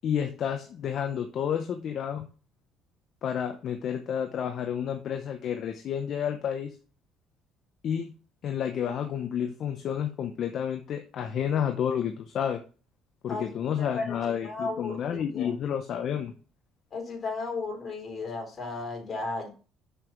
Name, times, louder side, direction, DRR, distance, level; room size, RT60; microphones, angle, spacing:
voice 1, 0.0-2.3 3.2-6.7 7.8-8.1 8.4-12.6 13.2-16.3, left 8 dB, 45° left, 6 dB, 0.9 m, -30 dB
voice 2, 13.3-15.5 16.9-19.5, left 3 dB, 25° left, 1 dB, 4.2 m, -35 dB
7.0 x 6.9 x 6.1 m, 0.37 s
cardioid pair, 160°, 0 cm